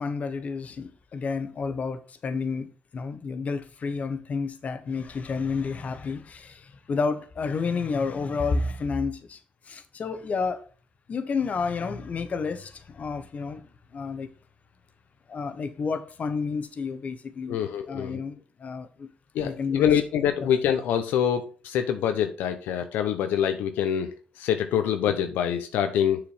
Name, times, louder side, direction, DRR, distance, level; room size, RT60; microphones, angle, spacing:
voice 1, 0.0-9.4 9.6-10.7 11.1-13.6 13.9-14.3 15.3-19.1 19.4-19.9 20.4-20.5, left 4 dB, 50° left, 1.2 m, -30 dB
voice 2, 17.5-18.2 19.3-26.2, left 9 dB, 85° left, 0.7 m, -25 dB
7.0 x 4.9 x 4.8 m
cardioid pair, 75°, 3 cm